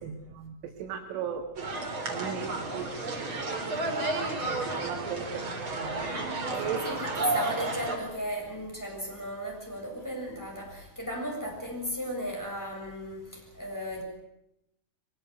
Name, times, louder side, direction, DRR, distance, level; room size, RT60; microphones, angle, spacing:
voice 1, 0.0-1.5 1.8-6.0 6.5-6.9 7.1-7.3, right 7 dB, 75° right, 4.3 m, -38 dB
sound 1, 1.6-8.0, right 2 dB, 30° right, 3.9 m, -32 dB
voice 2, 6.8-14.0, equal, 5° left, 6.7 m, -35 dB
23.0 x 20.5 x 9.5 m
omnidirectional pair, 5.7 m